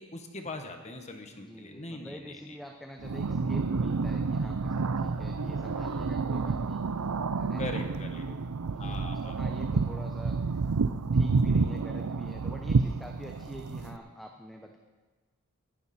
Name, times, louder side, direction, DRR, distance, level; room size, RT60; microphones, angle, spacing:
voice 1, 0.0-2.6 7.6-8.3 8.7-9.4, left 2 dB, 30° left, 5 dB, 1.4 m, -41 dB
voice 2, 1.3-6.8 7.4-10.6 11.1-14.8, equal, ahead, 2 dB, 0.8 m, -47 dB
sound 1, 3.0-14.0, right 4 dB, 85° right, 0.6 m, -29 dB
20.0 x 12.0 x 4.3 m, 1.3 s
head